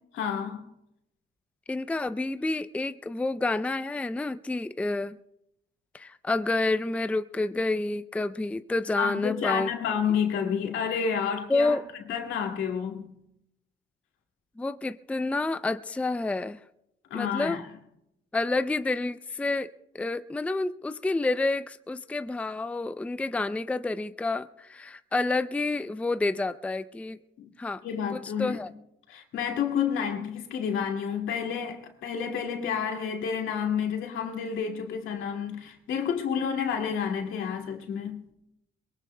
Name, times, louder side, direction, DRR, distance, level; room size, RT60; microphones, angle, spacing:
voice 1, 0.1-0.7 8.9-11.8 12.1-13.1 17.1-17.7 27.4-27.5 27.8-28.6 29.1-38.2, left 7 dB, 80° left, 2.3 m, -30 dB
voice 2, 1.7-5.2 5.9-9.7 11.5-11.8 14.6-16.6 17.1-17.6 18.3-19.7 19.9-27.2 27.6-27.8 28.1-28.7, left 2 dB, 5° left, 0.4 m, -29 dB
22.5 x 22.0 x 2.2 m
cardioid pair, 90°, 20 cm